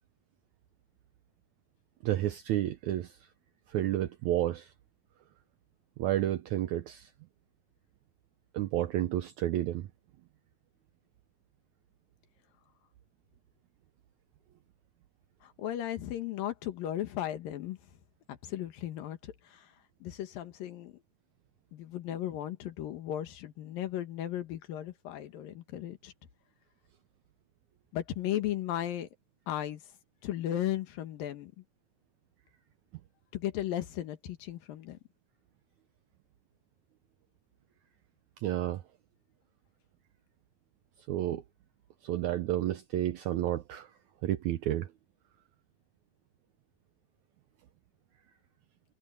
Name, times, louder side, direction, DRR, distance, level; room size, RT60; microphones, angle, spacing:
voice 1, 2.0-3.2 3.7-4.7 6.0-7.1 8.5-9.9 38.4-38.8 41.1-41.4 42.0-43.9 44.2-44.9, right 13 dB, 75° right, 1.7 m, -31 dB
voice 2, 15.4-17.8 18.3-19.7 20.0-21.0 21.7-26.1 27.9-29.1 29.5-29.8 30.2-31.5 33.3-35.0, left 12 dB, 75° left, 3.2 m, -36 dB
omnidirectional pair, 4.1 m